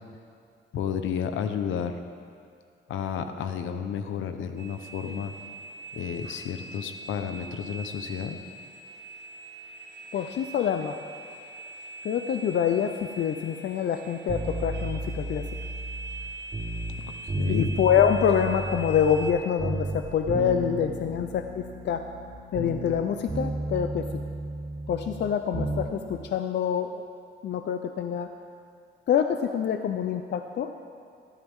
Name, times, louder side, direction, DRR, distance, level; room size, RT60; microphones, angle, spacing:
voice 1, 0.7-2.0 2.9-5.3 5.9-8.4 17.4-17.7, left 7 dB, 80° left, 8 dB, 1.0 m, -31 dB
sound 1, 4.6-19.3, right 2 dB, 60° right, 1.4 m, -42 dB
voice 2, 10.1-11.0 12.0-15.4 17.5-22.0 22.5-24.1 24.9-27.0 27.4-28.3 29.1-30.7, left 8 dB, 60° left, 7 dB, 0.7 m, -26 dB
sound 2, 14.3-17.0 17.3-19.3 19.6-23.0 23.3-25.9 26.2-26.3, right 2 dB, 30° right, 4.7 m, -33 dB
21.0 x 13.0 x 3.7 m, 2.3 s
cardioid pair, 90°, 20 cm